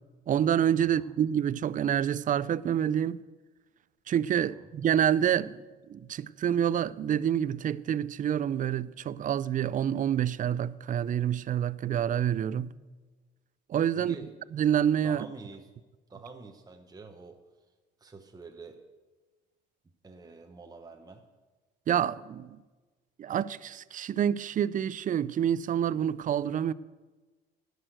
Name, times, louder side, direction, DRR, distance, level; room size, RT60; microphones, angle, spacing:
voice 1, 0.3-3.2 4.1-5.6 5.9-12.8 13.7-14.2 14.5-15.2 21.9-22.6 23.2-26.7, right 9 dB, 40° right, 0.4 m, -27 dB
voice 2, 0.8-1.2 4.3-4.7 14.0-14.4 15.0-15.7 16.1-17.4 18.0-18.8 20.0-21.2, right 4 dB, 20° right, 1.0 m, -47 dB
11.0 x 6.5 x 7.9 m
supercardioid pair, 70°, 21 cm